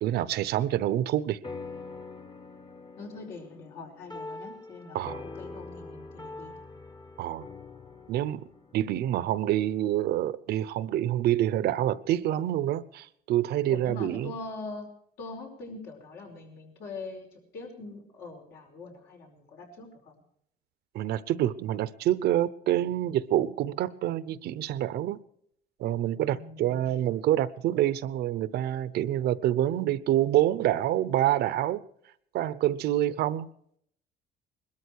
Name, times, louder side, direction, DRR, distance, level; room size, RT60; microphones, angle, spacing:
voice 1, 0.0-1.4 4.9-5.2 7.2-7.5 8.1-8.4 8.7-14.3 20.9-25.2 25.8-31.8 32.3-33.5, right 12 dB, 75° right, 0.8 m, -27 dB
sound 1, 1.4-10.2, left 3 dB, 25° left, 1.1 m, -44 dB
voice 2, 3.0-6.5 13.7-14.9 15.2-20.1 26.3-27.0, left 3 dB, 75° left, 5.2 m, -43 dB
21.5 x 13.0 x 4.7 m
cardioid pair, 110°, 17 cm